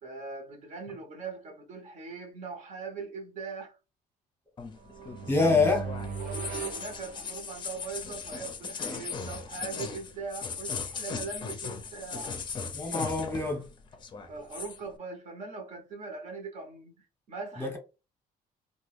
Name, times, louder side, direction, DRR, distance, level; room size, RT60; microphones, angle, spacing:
voice 1, 0.0-3.8 6.2-12.4 14.3-17.8, right 4 dB, 50° right, 1.0 m, -41 dB
sound 1, 4.6-13.7 13.9-14.8, left 5 dB, 30° left, 0.5 m, -38 dB
sound 2, 4.8-7.8, right 6 dB, 80° right, 0.6 m, -38 dB
voice 2, 5.3-5.9 12.7-13.6 17.6-17.8, left 3 dB, 15° left, 0.9 m, -25 dB
2.9 x 2.3 x 3.2 m
cardioid pair, 145°, 15 cm